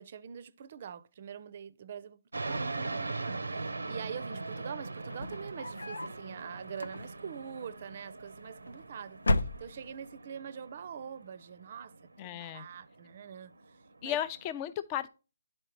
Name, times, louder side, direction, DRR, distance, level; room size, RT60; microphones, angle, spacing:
voice 1, 0.0-11.9 12.2-13.5 14.0-14.2, right 7 dB, 45° right, 0.5 m, -44 dB
sound 1, 2.3-14.5, right 3 dB, 90° right, 0.6 m, -41 dB
sound 2, 5.0-6.2 6.7-7.4 8.3-8.8 9.2-10.1, left 1 dB, 80° left, 0.5 m, -33 dB
voice 2, 12.2-12.7 14.0-15.1, left 11 dB, 25° left, 0.5 m, -35 dB
11.0 x 4.4 x 3.0 m
figure-of-eight pair, 150°, 0 cm